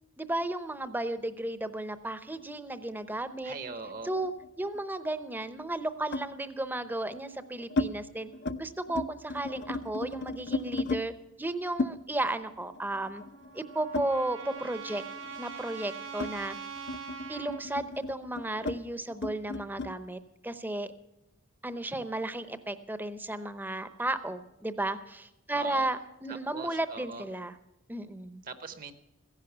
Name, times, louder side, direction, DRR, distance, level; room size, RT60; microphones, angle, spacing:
voice 1, 0.2-3.5 4.0-4.3 4.6-8.3 8.6-11.1 11.4-13.2 13.5-15.0 15.4-16.6 17.3-20.9 21.6-27.5 27.9-28.4, right 2 dB, 10° right, 11 dB, 0.7 m, -34 dB
sound 1, 3.2-4.8 6.1-6.4 7.1-7.9 8.3-8.6 8.9-11.0 11.8-14.7 15.0-19.9, left 2 dB, 60° left, 0.6 m, -36 dB
voice 2, 3.4-4.1 25.5-25.9 26.3-27.2 28.4-28.9, right 3 dB, 45° right, 10 dB, 0.9 m, -41 dB
Trumpet, 13.1-17.6, right 6 dB, 80° right, 2.9 m, -43 dB
15.5 x 10.5 x 6.8 m, 0.93 s
head